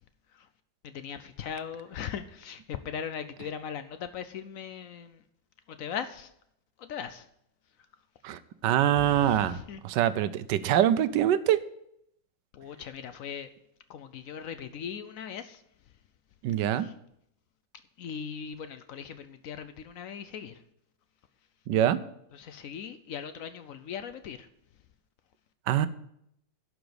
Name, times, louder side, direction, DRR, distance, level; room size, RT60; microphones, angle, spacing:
voice 1, 0.8-5.2 5.7-6.3 6.8-7.3 9.0-9.8 12.5-13.5 13.9-15.6 16.7-16.9 18.0-20.6 22.3-24.5, left 8 dB, 70° left, 0.8 m, -39 dB
voice 2, 8.2-11.6 16.4-16.9 21.7-22.0 25.7-25.9, right 11 dB, 75° right, 1.2 m, -24 dB
11.5 x 5.0 x 7.9 m
omnidirectional pair, 2.0 m